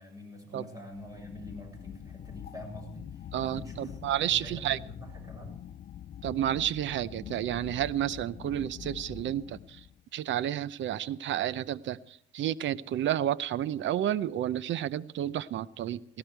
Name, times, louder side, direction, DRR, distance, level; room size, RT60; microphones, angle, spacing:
voice 1, 0.0-5.6, left 1 dB, 15° right, 2 dB, 7.2 m, -46 dB
sound 1, 0.9-10.0, left 10 dB, 55° left, 0.6 m, -45 dB
voice 2, 3.3-4.8 6.2-9.6 10.1-12.0 12.3-16.2, right 11 dB, 70° right, 19 dB, 0.7 m, -30 dB
18.5 x 16.5 x 4.6 m, 0.65 s
cardioid pair, 90°, 20 cm